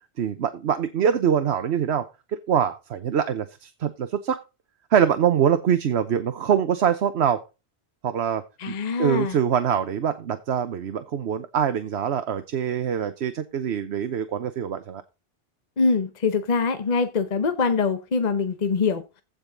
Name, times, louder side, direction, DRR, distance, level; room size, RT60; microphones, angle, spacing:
voice 1, 0.2-2.1 2.5-4.4 4.9-7.4 8.0-15.0, right 8 dB, 85° right, 1.1 m, -24 dB
voice 2, 8.6-9.4 15.8-19.0, left 4 dB, 45° left, 1.0 m, -23 dB
15.5 x 5.2 x 3.8 m
omnidirectional pair, 1.1 m